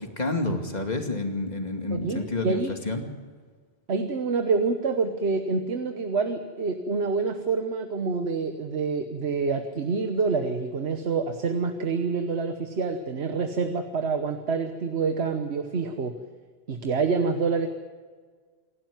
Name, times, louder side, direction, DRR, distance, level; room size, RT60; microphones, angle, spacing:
voice 1, 0.0-3.0, left 2 dB, 40° left, 4 dB, 2.4 m, -29 dB
voice 2, 1.9-2.7 3.9-16.2 16.7-17.7, right 4 dB, 85° right, 7 dB, 1.5 m, -27 dB
27.5 x 12.0 x 9.4 m, 1.5 s
omnidirectional pair, 1.1 m